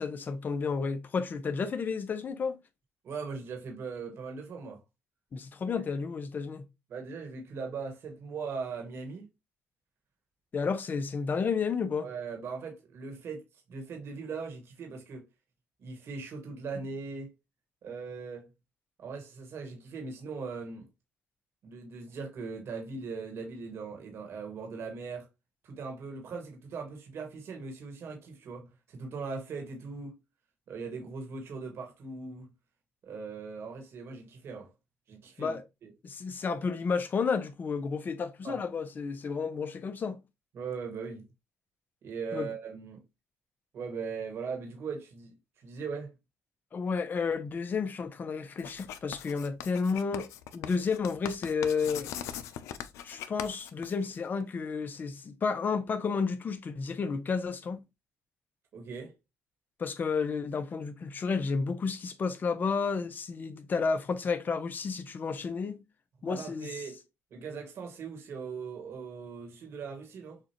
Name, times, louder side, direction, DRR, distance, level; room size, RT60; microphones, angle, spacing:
voice 1, 0.0-2.6 5.3-6.6 10.5-12.1 35.4-35.6 36.0-40.2 42.3-42.5 46.7-52.1 53.0-57.8 59.8-65.8 66.2-66.7, left 5 dB, 40° left, 0.8 m, -31 dB
voice 2, 3.0-4.8 5.7-5.8 6.9-9.3 12.0-15.3 15.8-17.3 17.8-18.5 19.0-20.9 21.6-25.3 25.6-30.2 30.7-32.5 33.0-34.7 35.1-35.9 38.4-38.6 40.5-41.3 42.0-43.0 43.7-46.1 58.7-59.1 66.3-67.0 67.3-70.4, right 5 dB, 60° right, 1.7 m, -40 dB
Writing, 48.6-54.4, left 10 dB, 85° left, 0.5 m, -41 dB
6.6 x 2.5 x 3.0 m
cardioid pair, 95°, 5 cm